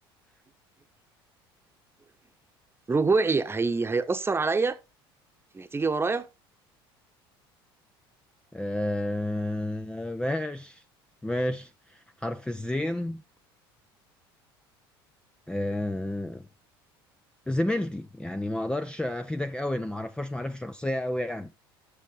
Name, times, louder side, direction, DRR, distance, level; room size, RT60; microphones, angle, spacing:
voice 1, 2.9-4.8 5.5-6.3, right 4 dB, 20° right, 1.2 m, -25 dB
voice 2, 8.5-10.8 11.2-13.2 15.5-16.4 17.5-21.5, left 1 dB, 5° left, 0.7 m, -30 dB
9.8 x 6.8 x 4.9 m
hypercardioid pair, 70°, 12 cm